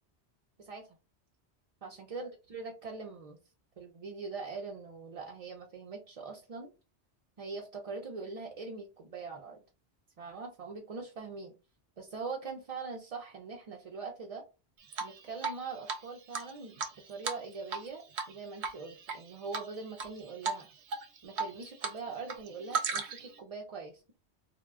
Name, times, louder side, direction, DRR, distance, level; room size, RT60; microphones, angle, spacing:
voice 1, 1.8-3.4 3.8-6.7 7.4-9.6 10.2-11.5 12.0-14.4 15.0-16.8 17.1-20.7 21.2-24.2, right 4 dB, 45° right, 0 dB, 0.5 m, -42 dB
Drip, 14.9-15.6 15.9-16.0 16.3-17.9 18.1-18.3 18.6-19.2 19.5-20.1 20.4-20.6 20.9-22.0 22.2-23.3, right 5 dB, 85° right, 0.9 m, -35 dB
3.0 x 2.2 x 3.4 m, 0.30 s
omnidirectional pair, 1.1 m